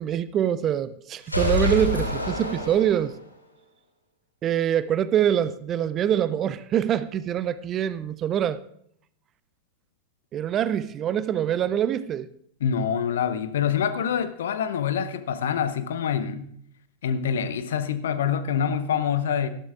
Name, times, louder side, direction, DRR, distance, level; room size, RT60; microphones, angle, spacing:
voice 1, 0.0-3.2 4.4-8.6 10.3-12.3, right 10 dB, 30° right, 0.5 m, -24 dB
sound 1, 1.2-3.3, left 2 dB, 85° left, 2.4 m, -27 dB
voice 2, 12.6-16.5 17.0-19.5, left 8 dB, 60° left, 0.8 m, -26 dB
18.0 x 13.0 x 2.4 m
figure-of-eight pair, 90°, 0 cm